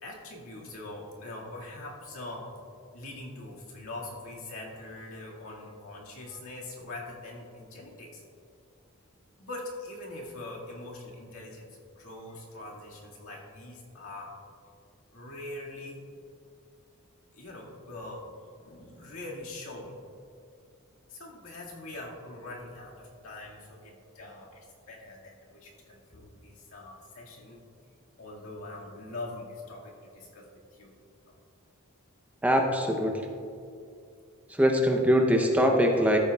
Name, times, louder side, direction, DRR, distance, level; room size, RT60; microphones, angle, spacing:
voice 1, 0.0-2.5 2.9-8.2 9.4-14.3 15.1-16.0 17.3-20.0 21.1-27.6 28.2-31.0 31.2-31.4, left 2 dB, 80° left, -3 dB, 1.9 m, -43 dB
voice 2, 32.4-33.2 34.5-36.2, equal, 5° right, 3 dB, 0.6 m, -23 dB
14.0 x 8.9 x 2.3 m, 2.5 s
head